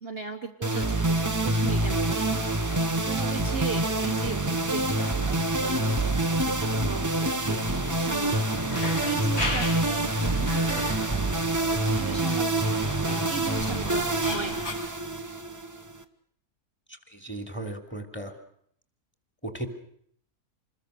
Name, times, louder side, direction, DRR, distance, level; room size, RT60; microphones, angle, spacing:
voice 1, 0.0-11.1 11.7-14.8, right 5 dB, 40° right, 3 dB, 1.3 m, -38 dB
sound 1, 0.6-16.0, right 2 dB, 15° right, 0.9 m, -26 dB
sound 2, 7.6-14.7, left 2 dB, 75° left, 6.1 m, -36 dB
voice 2, 16.9-18.3 19.4-19.7, right 1 dB, 5° left, 5 dB, 3.0 m, -36 dB
27.5 x 21.0 x 6.7 m, 0.68 s
omnidirectional pair, 1.6 m